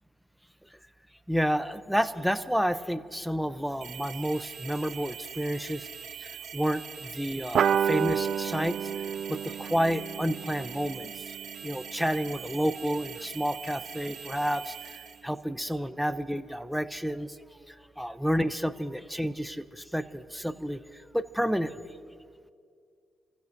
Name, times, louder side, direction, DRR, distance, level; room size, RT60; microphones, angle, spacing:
voice 1, 1.3-5.9 6.2-11.3 11.6-20.8 21.1-22.3, equal, ahead, 11 dB, 0.7 m, -30 dB
sound 1, 3.8-15.2, right 8 dB, 85° right, 2.2 m, -43 dB
sound 2, 7.5-12.5, right 8 dB, 70° right, 0.4 m, -30 dB
29.5 x 15.0 x 2.7 m, 2.3 s
cardioid pair, 80°, 0 cm